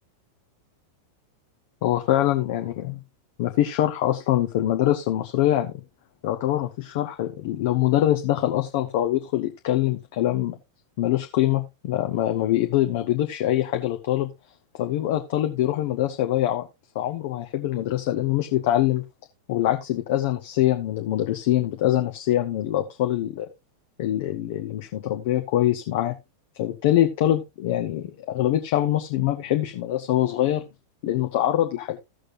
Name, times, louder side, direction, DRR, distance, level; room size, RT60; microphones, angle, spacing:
voice 1, 1.8-2.9 3.4-5.7 6.2-10.6 11.0-14.3 14.8-16.7 16.9-19.0 19.5-23.5 24.0-26.1 26.5-30.6 31.0-32.0, left 13 dB, 50° left, 5 dB, 0.9 m, -24 dB
16.0 x 6.4 x 2.6 m, 0.23 s
figure-of-eight pair, 90°, 0 cm